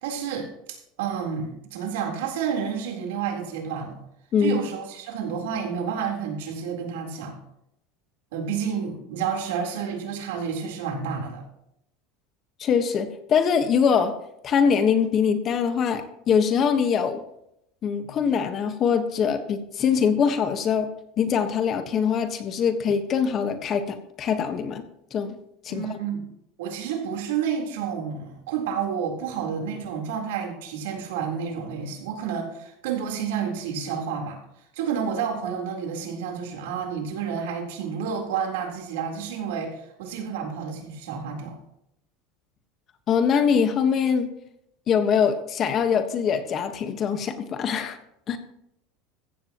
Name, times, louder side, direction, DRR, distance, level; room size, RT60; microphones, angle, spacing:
voice 1, 0.0-4.0 4.4-7.3 8.3-11.5 18.0-18.2 25.7-26.3 26.6-34.4 34.7-41.6, right 7 dB, 90° right, 2 dB, 3.9 m, -30 dB
voice 2, 12.6-14.1 14.4-17.2 17.8-20.9 21.2-24.8 25.1-25.3 25.6-26.0 43.1-44.3 44.9-48.0 48.3-48.4, left 7 dB, 35° left, 8 dB, 1.4 m, -23 dB
15.5 x 15.0 x 3.0 m, 0.78 s
supercardioid pair, 145°, 0 cm